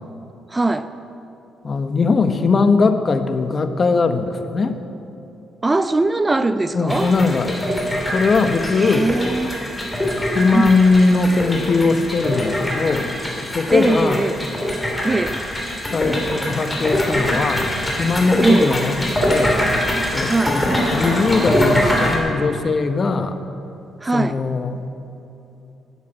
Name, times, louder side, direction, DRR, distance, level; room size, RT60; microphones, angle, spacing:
voice 1, 0.5-0.9 5.6-7.1 8.8-9.6 10.5-10.8 13.7-14.4 15.0-15.4 18.4-18.7 20.2-20.6 24.0-24.4, right 2 dB, 20° right, 11 dB, 0.5 m, -20 dB
voice 2, 1.6-4.8 6.7-7.6 8.1-9.1 10.3-13.1 13.5-14.2 15.9-19.6 20.1-23.4 24.1-24.8, left 4 dB, 40° left, 8 dB, 1.1 m, -20 dB
sound 1, 6.9-22.2, equal, 10° left, 3.3 m, -23 dB
12.5 x 9.5 x 8.7 m, 3.0 s
cardioid pair, 90°, 0 cm